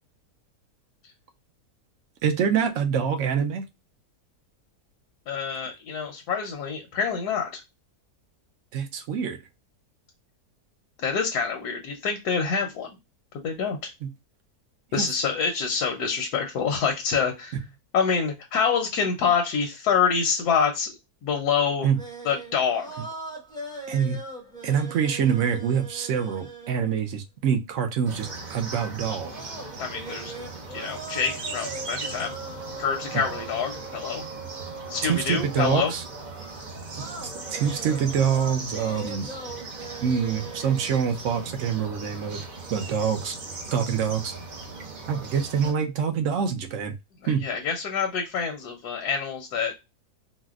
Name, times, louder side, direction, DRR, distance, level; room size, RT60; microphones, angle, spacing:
voice 1, 2.2-3.7 8.7-9.4 14.0-14.1 15.0-15.1 21.8-22.0 23.9-24.2 24.6-29.5 35.0-36.0 37.2-39.3 40.0-42.4 42.7-43.4 43.7-44.3 45.1-47.0 47.3-47.5, right 7 dB, 65° right, 6 dB, 0.9 m, -25 dB
voice 2, 5.3-7.6 11.0-12.9 13.4-13.9 14.9-17.6 17.9-20.9 21.2-21.9 22.2-22.9 29.8-30.3 30.7-32.3 32.8-34.2 34.9-35.9 47.2-49.7, left 6 dB, 85° left, 2 dB, 1.3 m, -26 dB
sound 1, 21.9-27.1 29.2-35.8 36.9-41.0, right 2 dB, 5° left, 0.4 m, -40 dB
sound 2, 28.1-45.7, right 3 dB, 45° right, 0.6 m, -38 dB
4.1 x 2.2 x 2.3 m, 0.23 s
omnidirectional pair, 1.6 m